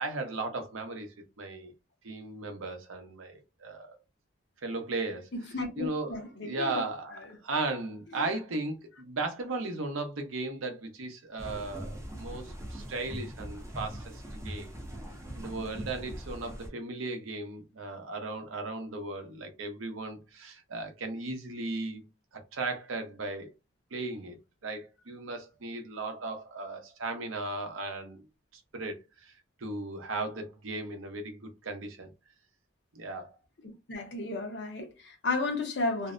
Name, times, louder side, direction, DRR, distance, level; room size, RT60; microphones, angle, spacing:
voice 1, 0.0-1.7 2.0-4.0 4.6-5.3 5.8-14.7 15.4-22.0 22.3-23.5 23.9-24.4 24.6-28.2 28.7-29.3 29.6-32.1 32.9-33.3, right 2 dB, 85° right, 0.7 m, -36 dB
voice 2, 5.5-6.9 8.2-8.3 33.9-36.1, left 3 dB, 60° left, 0.7 m, -33 dB
sound 1, 11.4-16.7, equal, 15° right, 0.5 m, -41 dB
2.5 x 2.1 x 2.4 m
head